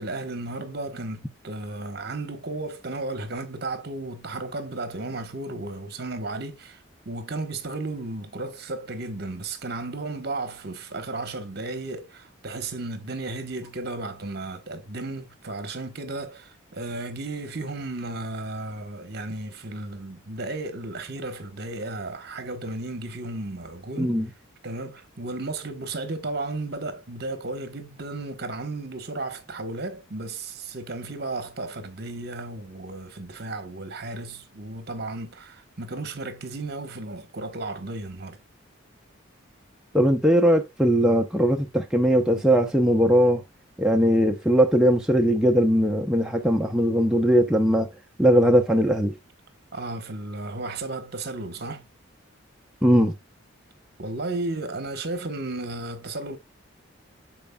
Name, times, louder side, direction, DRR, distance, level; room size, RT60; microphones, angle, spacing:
voice 1, 0.0-24.2 24.6-38.4 49.7-51.8 54.0-56.4, right 2 dB, 50° right, 1.1 m, -34 dB
voice 2, 39.9-43.4 43.8-47.9 48.2-49.2 52.8-53.1, equal, 5° right, 0.6 m, -20 dB
12.5 x 4.5 x 2.2 m
head